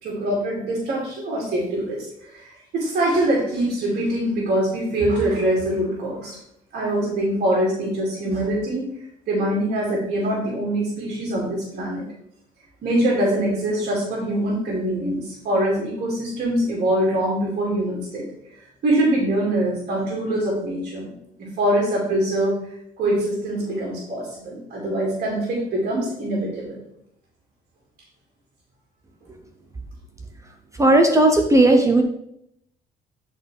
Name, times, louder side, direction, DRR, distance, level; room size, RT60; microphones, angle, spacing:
voice 1, 0.0-6.4 6.7-8.8 9.3-12.1 12.8-18.2 18.5-21.1 21.4-22.6 23.0-26.8, right 1 dB, 55° right, -3 dB, 2.2 m, -23 dB
voice 2, 30.8-32.0, right 2 dB, 20° right, 4 dB, 0.6 m, -15 dB
9.8 x 4.1 x 3.2 m, 0.77 s
cardioid pair, 110°, 17 cm